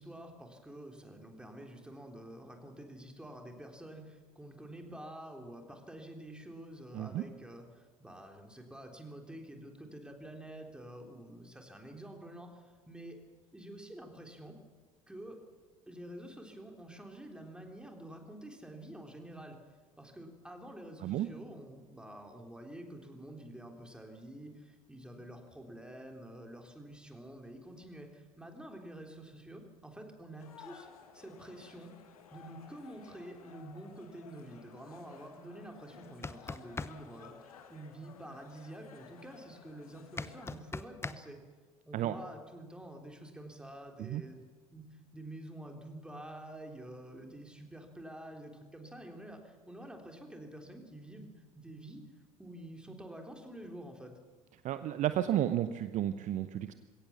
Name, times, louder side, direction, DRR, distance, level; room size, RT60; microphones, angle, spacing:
voice 1, 0.0-13.2 13.5-14.6 15.1-15.4 15.9-19.6 20.0-30.9 31.1-31.9 32.3-41.4 41.8-44.4 44.7-51.3 51.5-52.0 52.4-54.1, right 1 dB, 5° right, 3 dB, 3.6 m, -48 dB
sound 1, 30.4-40.5, left 7 dB, 70° left, 1.7 m, -56 dB
sound 2, 36.0-36.9 40.2-41.2, left 4 dB, 15° left, 0.8 m, -39 dB
voice 2, 54.6-56.7, right 12 dB, 40° right, 12 dB, 0.8 m, -32 dB
21.5 x 17.0 x 7.1 m, 1.4 s
figure-of-eight pair, 65°, 19 cm